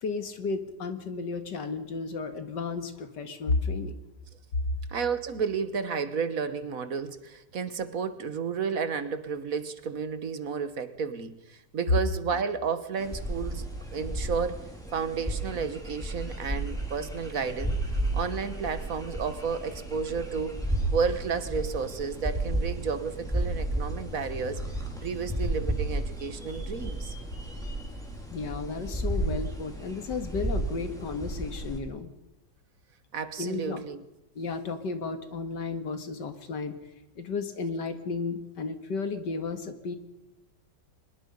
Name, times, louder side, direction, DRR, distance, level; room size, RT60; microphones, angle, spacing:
voice 1, 0.0-4.0 4.5-4.6 28.3-32.1 33.4-33.8 34.4-36.8 37.2-40.0, left 4 dB, 85° left, 8 dB, 2.5 m, -33 dB
voice 2, 4.9-14.6 14.9-17.8 18.1-20.6 20.9-24.6 25.0-27.2 33.1-34.0, right 6 dB, 55° right, 12 dB, 1.6 m, -32 dB
sound 1, 13.0-31.8, right 1 dB, ahead, 4.0 m, -33 dB
23.5 x 21.0 x 5.4 m, 0.95 s
omnidirectional pair, 1.8 m